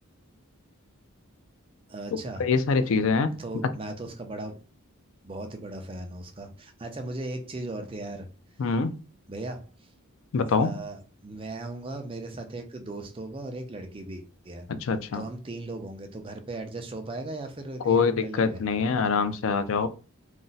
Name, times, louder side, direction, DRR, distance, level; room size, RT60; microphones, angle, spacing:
voice 1, 1.9-2.5 3.3-4.6 5.2-8.3 9.3-9.9 10.6-14.7 15.1-18.6, right 2 dB, 25° right, 0.4 m, -37 dB
voice 2, 2.4-3.3 8.6-9.0 10.3-10.7 14.7-15.2 17.9-19.9, left 5 dB, 65° left, 0.4 m, -24 dB
2.5 x 2.1 x 3.9 m
head